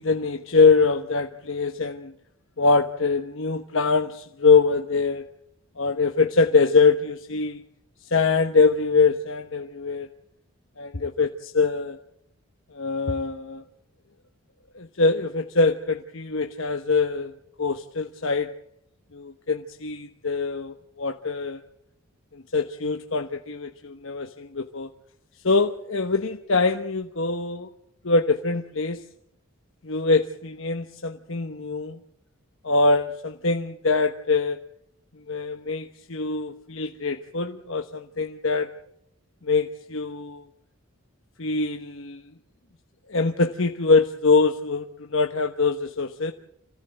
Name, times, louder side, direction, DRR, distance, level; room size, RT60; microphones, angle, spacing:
voice 1, 0.0-2.1 2.6-5.2 5.8-7.6 8.1-10.1 10.8-12.0 12.7-13.6 14.7-17.3 17.6-18.5 19.1-21.6 22.3-24.9 25.4-27.7 28.0-29.0 29.8-32.0 32.6-34.6 35.3-38.7 39.4-40.5 41.4-42.2 43.1-46.3, left 4 dB, 65° left, 6 dB, 1.1 m, -23 dB
26.5 x 16.5 x 7.8 m, 0.75 s
head